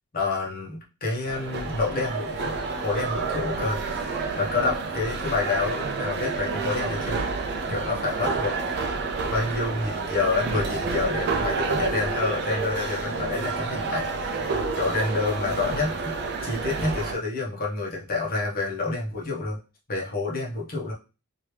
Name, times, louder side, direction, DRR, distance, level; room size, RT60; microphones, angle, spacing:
voice 1, 0.1-2.5 2.8-7.2 7.7-8.7 9.3-14.4 14.7-16.2 16.4-19.6 19.9-20.9, left 3 dB, 40° left, -2 dB, 1.1 m, -28 dB
sound 1, 1.3-17.1, right 4 dB, 50° right, 0.5 m, -29 dB
3.0 x 2.8 x 3.2 m, 0.31 s
head